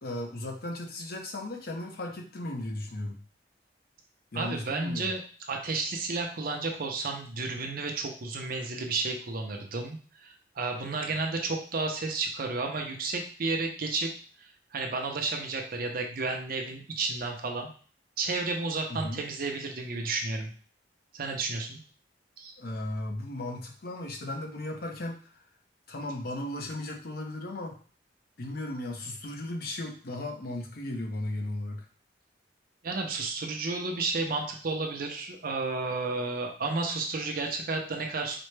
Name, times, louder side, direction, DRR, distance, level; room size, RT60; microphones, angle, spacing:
voice 1, 0.0-3.2 4.3-5.1 18.9-19.2 22.6-25.4 25.9-27.8 28.4-31.8, left 1 dB, 55° left, 2 dB, 0.7 m, -36 dB
voice 2, 4.3-5.2 5.5-14.1 14.4-17.7 18.2-20.5 21.1-21.8 22.4-22.5 32.8-38.4, right 3 dB, 50° right, 2 dB, 0.6 m, -32 dB
4.2 x 2.1 x 3.2 m, 0.42 s
head